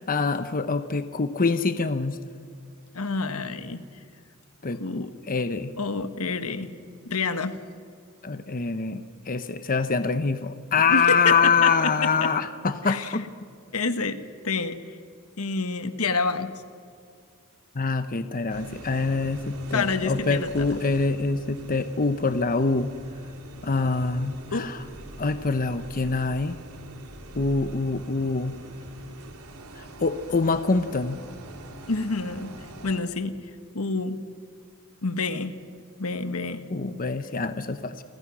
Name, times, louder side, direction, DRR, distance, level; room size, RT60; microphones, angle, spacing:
voice 1, 0.1-2.2 4.6-5.7 8.2-13.3 17.7-22.9 23.6-24.8 25.2-26.6 27.3-28.6 29.7-31.2 36.7-38.0, left 4 dB, 40° left, 10 dB, 0.9 m, -25 dB
voice 2, 2.9-3.8 4.8-5.1 5.8-6.7 7.0-7.6 10.9-12.3 12.9-13.1 13.7-14.8 15.4-16.5 19.7-20.7 24.5-24.7 31.9-32.5 32.8-33.4 33.7-34.2 35.0-35.5 36.0-36.6, left 4 dB, 75° left, 10 dB, 1.4 m, -28 dB
sound 1, 18.5-33.0, right 1 dB, 90° right, 2.9 m, -44 dB
29.5 x 24.5 x 6.2 m, 2.2 s
head